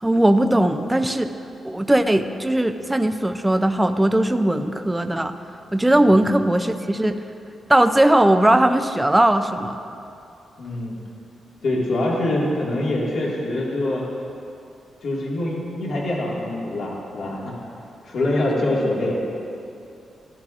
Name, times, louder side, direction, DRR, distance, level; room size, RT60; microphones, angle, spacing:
voice 1, 0.0-1.3 1.6-5.3 5.7-7.2 7.7-9.8, right 1 dB, 10° right, 7 dB, 0.4 m, -18 dB
voice 2, 10.6-11.0 11.6-14.0 15.0-17.6 18.0-19.1, left 1 dB, 65° left, -4 dB, 1.9 m, -24 dB
13.5 x 13.0 x 2.5 m, 2.6 s
wide cardioid pair, 140°, 0 cm